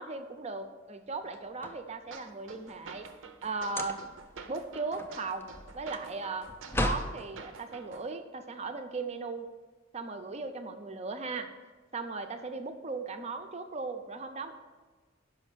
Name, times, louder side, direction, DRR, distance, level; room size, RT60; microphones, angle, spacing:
voice 1, 0.0-3.1 3.4-4.0 4.5-9.5 9.9-11.5 11.9-14.5, right 3 dB, 35° right, 8 dB, 0.6 m, -37 dB
sound 1, 1.2-2.4 3.6-4.3 4.7-7.2, left 1 dB, 10° left, 0.4 m, -36 dB
sound 2, 2.1-8.1, right 4 dB, 80° right, 0.6 m, -49 dB
5.7 x 5.3 x 6.8 m, 1.3 s
head